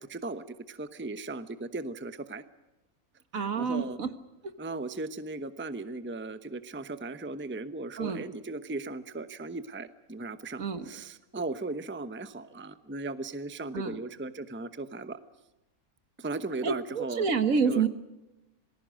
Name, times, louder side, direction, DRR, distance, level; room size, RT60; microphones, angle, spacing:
voice 1, 0.0-2.4 3.3-4.0 4.6-15.2 16.2-17.3 17.6-17.9, right 3 dB, 10° right, 11 dB, 0.8 m, -37 dB
voice 2, 3.3-4.1 8.0-8.2 10.6-10.9 13.7-14.0 16.6-17.9, right 5 dB, 65° right, 10 dB, 1.9 m, -28 dB
27.0 x 20.0 x 6.4 m, 1.0 s
omnidirectional pair, 1.6 m